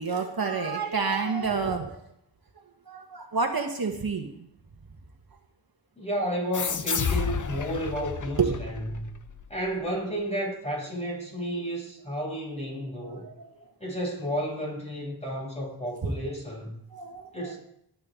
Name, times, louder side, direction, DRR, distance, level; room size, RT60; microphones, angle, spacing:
voice 1, 0.0-2.0 2.9-4.3 8.4-8.6 13.0-13.6 16.0-16.1 16.9-17.5, right 5 dB, 55° right, 3 dB, 1.4 m, -29 dB
voice 2, 6.0-9.1 9.5-13.3 13.8-16.8 17.3-17.6, equal, 15° left, -3 dB, 6.8 m, -32 dB
sound 1, 6.5-9.7, left 6 dB, 45° left, 0.8 m, -31 dB
22.0 x 8.8 x 3.7 m, 0.75 s
wide cardioid pair, 75°, 42 cm